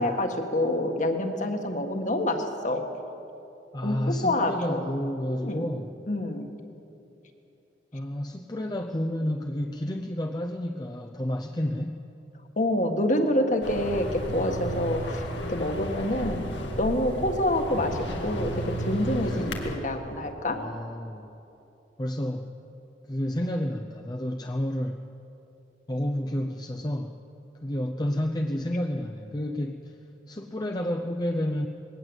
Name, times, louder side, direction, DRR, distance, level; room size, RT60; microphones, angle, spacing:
voice 1, 0.0-2.9 3.8-4.8 5.3-5.7 6.1-6.4 12.6-16.5 16.8-20.6, left 1 dB, 45° left, 5 dB, 1.7 m, -27 dB
voice 2, 3.7-5.9 7.9-12.0 19.3-19.5 20.5-21.3 22.0-22.5 23.1-25.0 25.9-27.2 27.6-30.0 30.3-31.7, left 1 dB, 20° left, 3 dB, 0.7 m, -30 dB
sound 1, 13.6-19.8, equal, 85° left, 2.3 m, -33 dB
20.5 x 18.0 x 8.1 m, 2.8 s
head